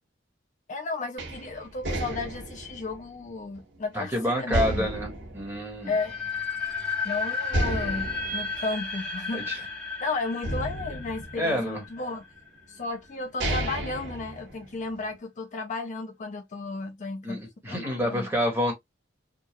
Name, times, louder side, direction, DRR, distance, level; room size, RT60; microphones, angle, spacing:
voice 1, 0.7-4.9 5.9-6.1 7.0-9.6 10.0-12.3 12.7-18.3, left 3 dB, 40° left, 0.5 m, -34 dB
sound 1, 1.2-4.0 4.5-6.5 6.8-6.9 7.5-9.9 10.4-12.0 12.8-12.9 13.2-15.0, right 1 dB, 75° right, 1.3 m, -33 dB
voice 2, 3.9-5.9 9.3-9.6 11.4-11.8 17.2-18.7, equal, 15° right, 1.5 m, -28 dB
sound 2, 5.8-12.7, left 4 dB, 5° left, 1.1 m, -33 dB
3.7 x 2.4 x 2.9 m
head